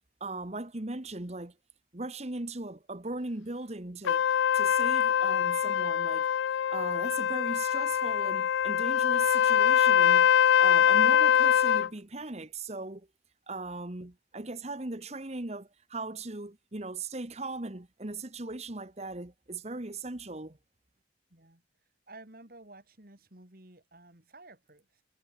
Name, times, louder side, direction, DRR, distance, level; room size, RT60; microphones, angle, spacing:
voice 1, 0.2-1.5 1.9-4.3 4.5-6.3 6.7-10.3 10.6-13.1 13.5-20.6, right 2 dB, 35° right, 1.3 m, -38 dB
Trumpet, 4.1-11.9, left 9 dB, 75° left, 0.3 m, -24 dB
voice 2, 21.3-21.6 22.1-25.0, right 2 dB, 50° right, 3.1 m, -53 dB
head